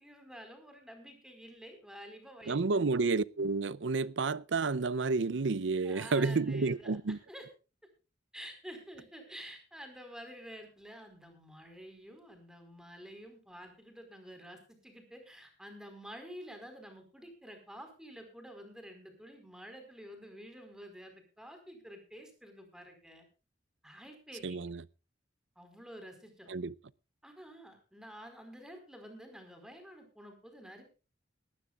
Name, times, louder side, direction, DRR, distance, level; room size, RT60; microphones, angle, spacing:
voice 1, 0.0-2.6 5.8-7.5 8.3-23.2 23.8-24.6 25.6-26.5 27.2-30.8, equal, 5° right, 4.6 m, -50 dB
voice 2, 2.5-7.2 24.4-24.8 26.5-26.7, right 4 dB, 80° right, 0.6 m, -30 dB
20.0 x 15.0 x 2.4 m
head